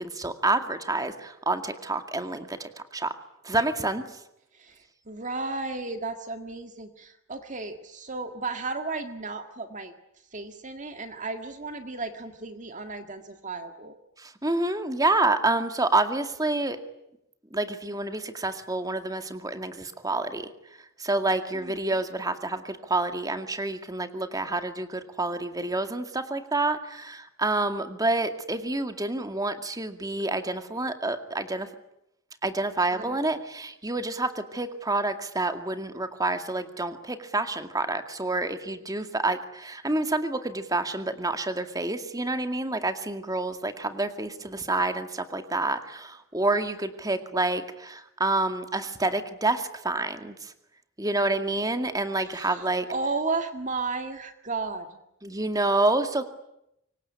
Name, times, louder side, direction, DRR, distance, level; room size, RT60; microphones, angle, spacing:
voice 1, 0.0-3.1 3.4-4.0 14.2-16.8 17.5-20.4 21.0-31.7 32.4-50.5 51.0-52.9 55.2-56.2, right 2 dB, 15° right, 8 dB, 2.1 m, -28 dB
voice 2, 4.5-9.9 10.3-13.9 21.5-22.0 32.9-33.2 52.2-54.9, right 3 dB, 35° right, 7 dB, 1.8 m, -34 dB
26.0 x 23.5 x 9.7 m, 0.81 s
head